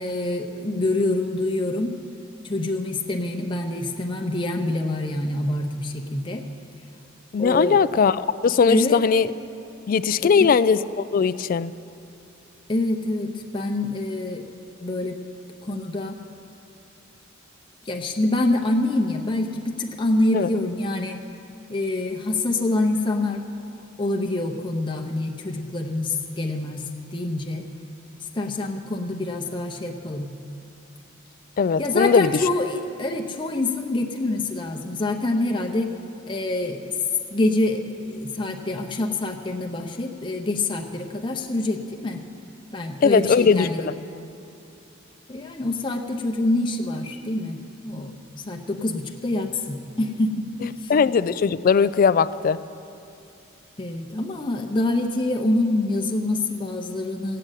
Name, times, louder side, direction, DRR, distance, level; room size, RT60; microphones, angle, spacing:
voice 1, 0.0-2.0 2.4-6.4 7.4-7.8 8.7-9.0 10.2-10.5 12.7-14.4 14.8-15.2 15.6-16.2 17.8-21.2 21.7-23.5 24.0-26.9 27.1-27.6 28.3-30.3 31.8-35.9 36.3-36.9 37.3-42.2 42.7-43.9 45.3-48.1 48.5-50.9 53.8-57.4, left 2 dB, 25° left, 1 dB, 0.7 m, -26 dB
voice 2, 7.3-9.3 9.9-11.7 20.3-20.5 31.6-32.3 43.0-43.9 50.9-52.6, left 6 dB, 40° left, 15 dB, 0.3 m, -19 dB
15.5 x 7.7 x 9.1 m, 2.7 s
head